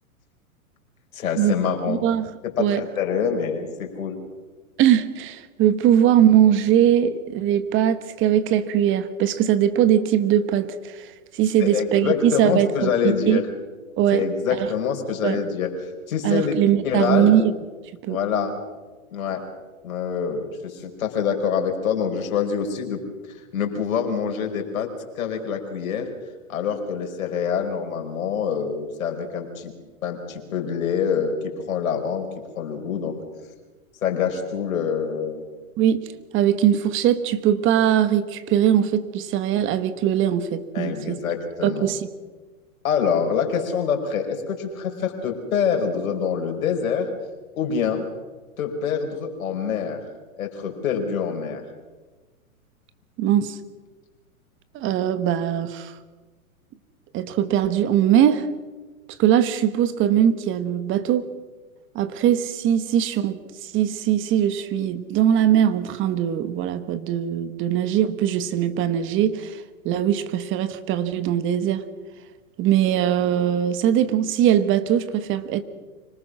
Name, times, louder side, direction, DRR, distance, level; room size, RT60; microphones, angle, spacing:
voice 1, 1.1-2.1 2.4-4.2 11.6-13.5 14.1-16.5 16.8-17.4 18.1-18.5 19.1-19.4 19.8-23.0 23.3-24.9 25.1-26.1 26.5-29.7 30.0-32.3 32.6-33.2 34.0-35.4 40.7-41.9 42.8-47.1 47.6-48.1 48.6-50.0 50.4-51.6, left 7 dB, 70° left, 3 dB, 4.9 m, -25 dB
voice 2, 1.9-2.3 2.6-2.8 4.8-13.4 14.0-14.2 14.5-14.7 15.2-15.4 16.2-17.5 18.0-18.2 35.8-36.0 36.3-41.2 41.6-42.1 53.2-53.6 54.7-55.9 57.1-58.5 59.2-61.3 61.9-71.8 72.6-75.6, right 10 dB, 30° right, 13 dB, 1.3 m, -21 dB
25.5 x 19.0 x 6.2 m, 1.3 s
hypercardioid pair, 130°, 42 cm